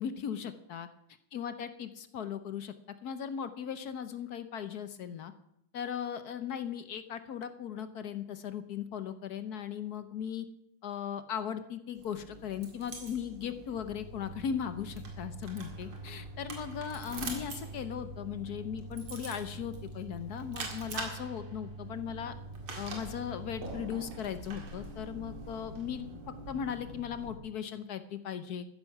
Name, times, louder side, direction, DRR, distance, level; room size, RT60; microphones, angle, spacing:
voice 1, 0.0-0.9 1.3-2.7 3.0-5.3 5.7-10.5 10.8-22.3 22.8-28.7, left 8 dB, 60° left, 11 dB, 1.1 m, -38 dB
sound 1, 12.0-27.3, right 2 dB, 85° right, 3.1 m, -45 dB
sound 2, 13.7-23.7, right 2 dB, 20° right, 4.2 m, -46 dB
14.0 x 10.5 x 5.9 m, 0.77 s
omnidirectional pair, 2.3 m